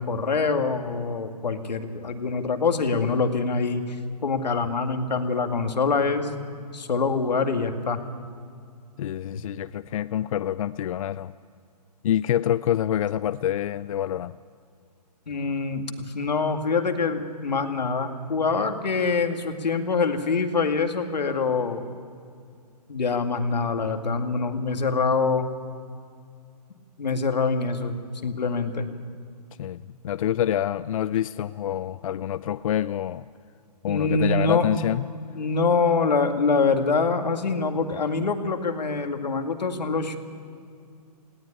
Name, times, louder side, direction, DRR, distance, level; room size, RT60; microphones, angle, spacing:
voice 1, 0.0-4.0 4.2-6.3 6.7-8.0 9.3-9.4 15.3-21.8 22.9-25.5 27.0-28.9 33.9-34.7 35.3-40.2, left 4 dB, 90° left, 2.1 m, -25 dB
voice 2, 9.0-11.3 12.0-14.4 29.6-33.3 33.8-35.1, left 11 dB, 55° left, 0.4 m, -26 dB
19.0 x 17.5 x 10.0 m
hypercardioid pair, 150°, 21 cm